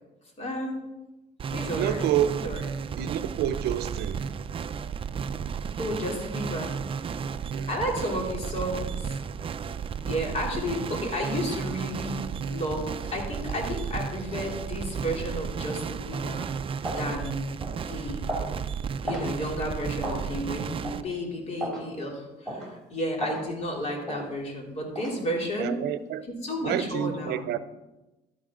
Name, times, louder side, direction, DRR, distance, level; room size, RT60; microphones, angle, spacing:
voice 1, 0.4-0.8 1.5-2.0 2.3-2.6 5.8-6.8 7.7-9.2 10.1-16.5 16.8-17.4 17.8-18.3 19.0-25.8 26.4-27.4, equal, 40° left, 3.3 m, -32 dB
sound 1, 1.4-21.0, right 6 dB, 30° right, 0.5 m, -33 dB
voice 2, 1.6-2.3 3.0-4.2 7.5-7.7 25.6-26.2 26.6-27.6, right 11 dB, 75° right, 0.7 m, -28 dB
sound 2, 16.1-16.3 16.8-17.1 17.6-17.8 18.3-18.5 19.1-19.3 20.0-20.2 20.8-21.0 21.6-21.8 22.5-22.7 23.2-23.5 24.1-24.3 25.0-25.2, right 1 dB, 5° left, 3.2 m, -33 dB
12.0 x 10.5 x 3.8 m
cardioid pair, 110°, 17 cm